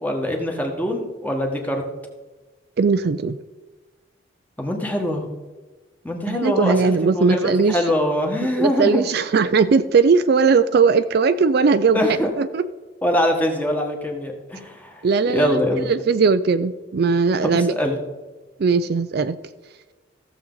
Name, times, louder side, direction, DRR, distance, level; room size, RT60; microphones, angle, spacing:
voice 1, 0.0-1.8 4.6-5.2 6.0-9.1 11.9-12.3 13.0-15.9 17.4-18.0, left 1 dB, 10° left, 2 dB, 1.4 m, -23 dB
voice 2, 2.8-3.4 6.3-7.8 8.6-12.0 12.4-12.6 15.0-15.6 15.9-17.7 18.6-19.4, right 5 dB, 50° right, 11 dB, 0.4 m, -18 dB
15.0 x 7.2 x 3.9 m, 1.2 s
head